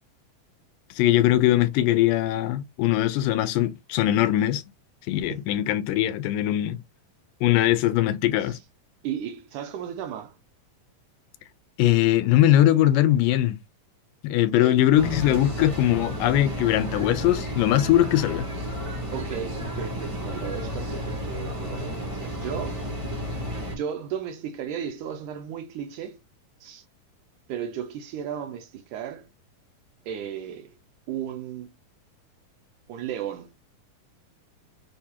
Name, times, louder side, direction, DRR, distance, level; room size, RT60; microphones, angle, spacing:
voice 1, 1.0-4.6 5.1-6.8 7.4-8.6 11.8-13.6 14.2-18.5, left 13 dB, 80° left, 2.1 m, -21 dB
voice 2, 9.0-10.4 14.6-14.8 19.1-22.8 23.8-26.2 26.6-26.8 27.5-29.3 30.1-30.7 31.1-31.8 32.9-33.5, right 9 dB, 75° right, 2.0 m, -35 dB
sound 1, 14.9-23.7, equal, 55° right, 0.3 m, -32 dB
6.4 x 2.4 x 2.8 m
omnidirectional pair, 3.9 m